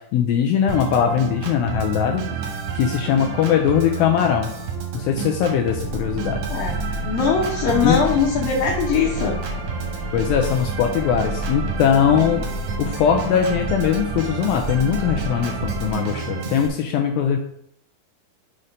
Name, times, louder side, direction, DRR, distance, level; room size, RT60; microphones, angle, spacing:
voice 1, 0.1-2.2 2.7-4.5 4.9-6.4 6.9-7.0 7.8-8.0 10.1-12.4 12.8-17.4, left 8 dB, 90° left, 3 dB, 2.1 m, -20 dB
Organ, 0.7-16.7, right 6 dB, 65° right, 2.5 m, -30 dB
sound 1, 5.8-15.9, left 1 dB, 35° right, 1.4 m, -31 dB
voice 2, 7.0-9.4, left 6 dB, 70° left, -2 dB, 2.4 m, -21 dB
6.5 x 4.3 x 5.2 m, 0.69 s
omnidirectional pair, 4.8 m